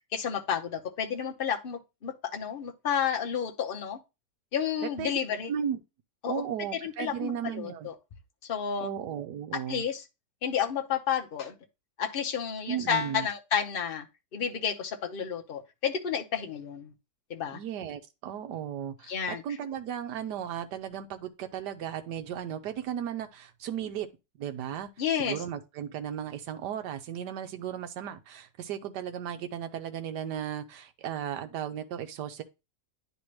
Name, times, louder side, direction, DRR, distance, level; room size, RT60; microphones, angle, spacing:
voice 1, 0.1-4.0 4.5-5.5 6.2-6.4 6.7-7.9 8.5-8.9 9.7-10.0 10.4-11.5 12.0-14.1 14.3-16.9 17.3-17.6 19.1-19.4 25.0-25.4, left 8 dB, 45° left, 0.8 m, -31 dB
voice 2, 5.5-5.8 6.3-7.9 8.8-9.8 12.7-13.3 17.5-24.1 24.4-24.9 25.2-32.4, right 9 dB, 80° right, 1.3 m, -35 dB
10.0 x 3.4 x 3.1 m
omnidirectional pair, 1.8 m